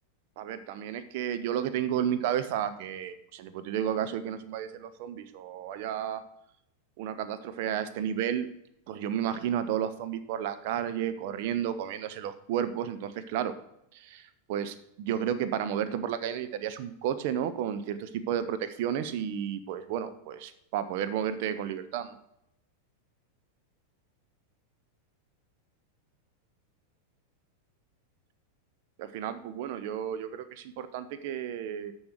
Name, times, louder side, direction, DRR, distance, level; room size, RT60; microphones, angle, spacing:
voice 1, 0.4-6.2 7.0-8.5 8.9-13.5 13.9-22.2 29.0-31.9, right 9 dB, 50° right, 10 dB, 0.6 m, -32 dB
6.8 x 6.3 x 6.5 m, 0.78 s
figure-of-eight pair, 90°, 0 cm